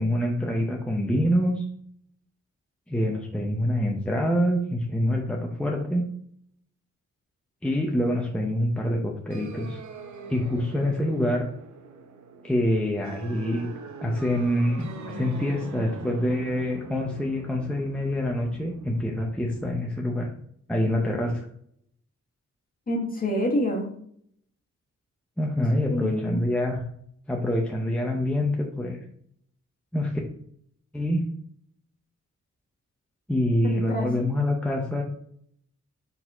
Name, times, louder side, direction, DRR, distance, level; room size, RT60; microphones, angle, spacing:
voice 1, 0.0-1.6 2.9-6.1 7.6-9.8 10.3-11.4 12.4-13.7 14.0-20.3 20.7-21.5 25.4-26.8 27.3-29.0 29.9-30.1 30.9-31.2 33.3-35.0, left 1 dB, 5° left, 0 dB, 0.7 m, -26 dB
sound 1, 9.3-19.8, right 3 dB, 75° right, 0.8 m, -42 dB
voice 2, 22.9-23.9 25.9-26.5 33.6-34.1, left 1 dB, 30° left, 0 dB, 1.4 m, -27 dB
4.7 x 4.1 x 4.9 m, 0.66 s
wide cardioid pair, 135°, 29 cm